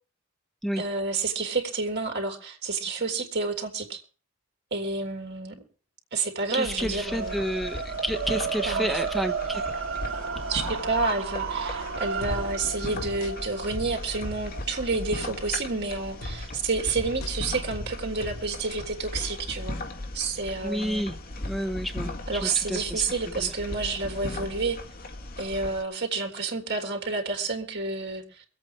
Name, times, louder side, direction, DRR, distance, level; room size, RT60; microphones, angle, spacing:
voice 1, 0.8-4.0 4.7-5.6 6.1-7.4 8.7-8.9 10.5-19.8 20.1-21.1 22.3-24.8 25.4-28.4, right 4 dB, 55° right, 2 dB, 3.4 m, -29 dB
voice 2, 6.5-9.6 20.6-21.2 21.4-23.5, equal, ahead, 6 dB, 1.0 m, -30 dB
sound 1, 6.6-25.8, left 1 dB, 45° left, 1.9 m, -37 dB
sound 2, 7.0-17.2, right 6 dB, 85° right, 1.6 m, -34 dB
sound 3, 12.2-14.7 15.2-15.4 16.2-18.8 19.2-19.4, left 1 dB, 85° left, 1.1 m, -39 dB
23.5 x 8.6 x 4.6 m, 0.38 s
head